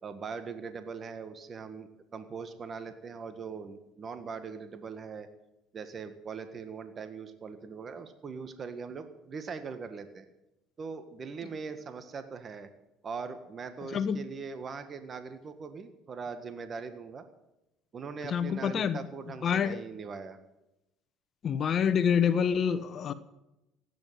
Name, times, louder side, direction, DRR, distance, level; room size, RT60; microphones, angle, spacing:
voice 1, 0.0-5.3 5.7-10.2 10.8-12.7 13.0-17.2 17.9-20.4, right 5 dB, 40° right, 1.6 m, -41 dB
voice 2, 18.3-19.0 19.4-19.8 21.4-23.1, left 7 dB, 45° left, 1.0 m, -27 dB
16.0 x 9.5 x 9.2 m
hypercardioid pair, 75°, 0 cm